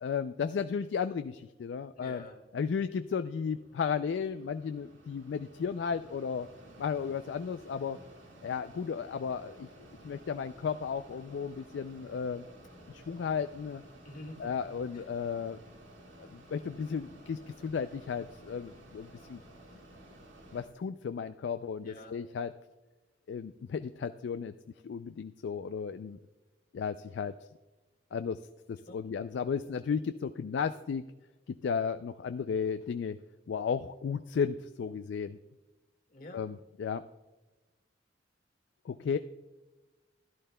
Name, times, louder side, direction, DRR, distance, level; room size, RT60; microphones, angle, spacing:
voice 1, 0.0-2.2 2.5-6.5 6.8-8.0 8.4-9.7 10.0-12.4 12.9-13.8 14.4-15.6 16.2-19.4 20.5-22.5 23.3-24.5 24.8-26.2 26.7-27.3 28.1-28.4 28.7-31.0 31.5-33.2 33.5-35.4 36.3-37.0 38.9-39.2, left 6 dB, 65° left, 10 dB, 0.3 m, -34 dB
voice 2, 2.0-2.4 14.0-14.5 14.9-15.0 21.8-22.2 28.9-29.0 36.1-36.4, left 1 dB, 50° left, 3 dB, 1.7 m, -47 dB
Mechanisms, 2.9-20.7, right 1 dB, 90° right, 2.0 m, -54 dB
15.5 x 11.5 x 2.2 m, 1.2 s
head